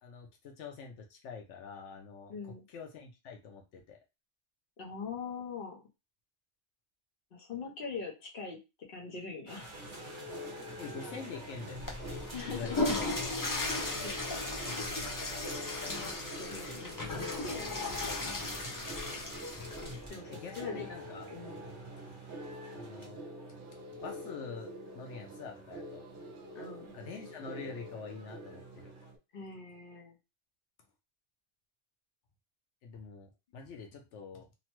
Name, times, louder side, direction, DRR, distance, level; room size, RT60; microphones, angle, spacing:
voice 1, 0.0-4.0 10.8-11.9 12.5-13.1 20.3-21.3 22.0-22.1 22.7-23.2 24.0-26.0 26.9-28.9 32.8-34.5, left 5 dB, 85° left, 2 dB, 1.0 m, -45 dB
voice 2, 2.3-2.6 4.8-5.8 7.3-8.6 8.9-9.8 12.3-13.0 13.3-13.5 13.8-14.5 16.4-17.8 20.1-20.9 21.3-21.7 26.5-26.9 29.3-30.1, left 5 dB, 55° left, 1 dB, 1.0 m, -42 dB
sound 1, 9.5-29.1, right 1 dB, 30° right, 0.9 m, -51 dB
sound 2, 9.7-29.2, equal, 70° right, 0.8 m, -47 dB
Water / Toilet flush, 11.7-20.1, left 2 dB, 35° left, 0.3 m, -36 dB
3.0 x 2.1 x 2.9 m, 0.26 s
omnidirectional pair, 1.2 m